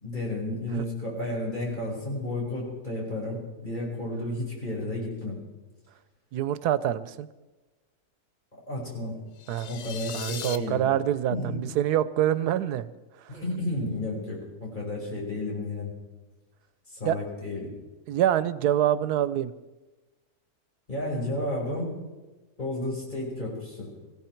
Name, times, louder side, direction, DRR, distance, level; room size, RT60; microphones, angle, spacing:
voice 1, 0.0-5.4 8.7-9.2 9.7-10.8 11.3-11.6 13.3-15.9 16.9-17.7 20.9-21.9 22.6-23.9, left 1 dB, 30° left, -3 dB, 5.3 m, -32 dB
voice 2, 6.3-7.3 9.5-9.7 10.1-12.9 13.2-13.4 17.0-17.2 18.1-19.5, right 11 dB, 90° right, 15 dB, 1.2 m, -26 dB
sound 1, 9.4-10.6, left 9 dB, 90° left, 1.3 m, -37 dB
19.5 x 15.5 x 4.5 m, 1.2 s
omnidirectional pair, 1.6 m